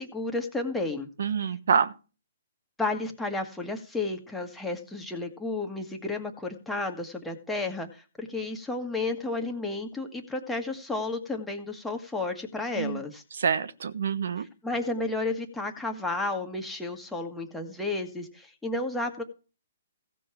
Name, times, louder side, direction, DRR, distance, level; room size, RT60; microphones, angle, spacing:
voice 1, 0.0-1.1 2.8-13.2 14.4-19.2, left 2 dB, 5° left, 1.6 m, -32 dB
voice 2, 1.2-1.9 12.8-13.0 13.4-14.5, right 6 dB, 70° right, 1.0 m, -26 dB
16.0 x 5.4 x 6.1 m
hypercardioid pair, 140°, 0 cm